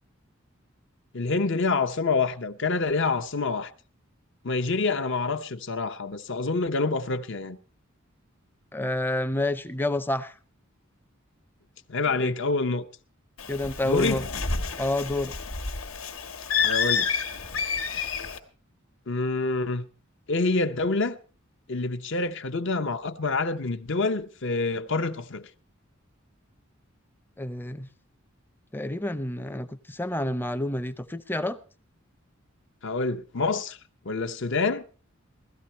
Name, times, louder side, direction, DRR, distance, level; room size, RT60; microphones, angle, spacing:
voice 1, 1.1-3.7 4.4-7.6 11.9-12.8 13.8-14.2 16.6-17.1 19.1-19.9 20.3-21.2 21.7-25.5 32.8-33.8 34.0-34.8, left 3 dB, 65° left, 0.8 m, -27 dB
voice 2, 8.7-10.3 12.2-12.3 13.5-14.2 14.8-15.4 27.4-27.9 28.7-31.6, left 1 dB, 10° left, 0.6 m, -29 dB
Bird, 13.4-18.4, left 5 dB, 85° left, 1.4 m, -29 dB
16.5 x 13.5 x 4.3 m
head